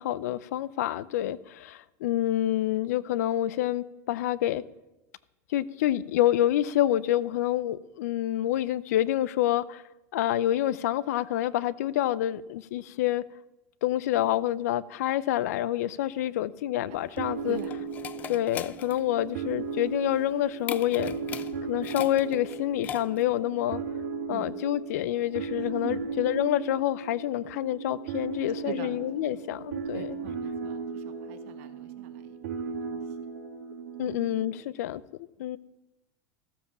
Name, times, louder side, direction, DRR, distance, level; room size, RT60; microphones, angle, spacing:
voice 1, 0.0-4.6 5.5-9.8 10.1-13.2 13.8-17.6 18.3-21.2 21.7-23.8 24.3-30.2 34.0-35.0 35.4-35.6, left 13 dB, 75° left, 19 dB, 0.5 m, -27 dB
sound 1, 16.9-23.4, left 9 dB, 20° left, 0.3 m, -41 dB
sound 2, 17.2-34.6, right 5 dB, 85° right, 1.9 m, -36 dB
voice 2, 25.5-26.0 28.6-28.9 29.3-29.4 29.9-32.4 32.7-33.0 34.0-34.2, right 10 dB, 55° right, 8 dB, 1.4 m, -43 dB
14.5 x 7.3 x 6.9 m, 0.99 s
supercardioid pair, 170°, 9 cm